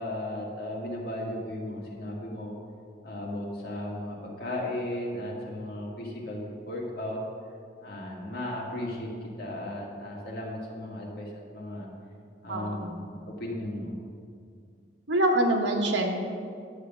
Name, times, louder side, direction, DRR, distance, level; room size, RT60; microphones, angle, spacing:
voice 1, 0.0-2.6 3.0-7.2 7.8-11.9 12.4-13.9, left 1 dB, 60° left, -3 dB, 2.2 m, -35 dB
voice 2, 12.5-13.0 15.1-16.2, right 1 dB, 85° right, 1 dB, 1.3 m, -25 dB
10.5 x 6.6 x 6.2 m, 2.3 s
head